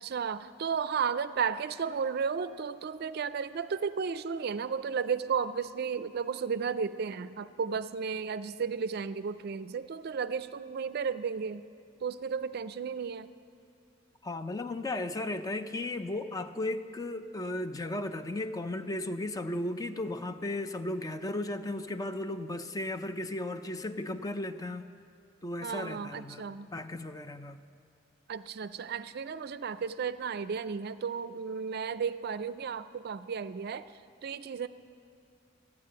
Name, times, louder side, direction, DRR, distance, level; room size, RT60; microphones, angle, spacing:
voice 1, 0.0-11.7 12.0-13.3 25.6-26.7 28.3-33.9 34.2-34.7, right 6 dB, 55° right, 14 dB, 0.4 m, -33 dB
voice 2, 14.2-24.9 25.4-27.6, left 1 dB, 20° left, 9 dB, 0.4 m, -35 dB
13.5 x 9.5 x 7.5 m, 2.4 s
head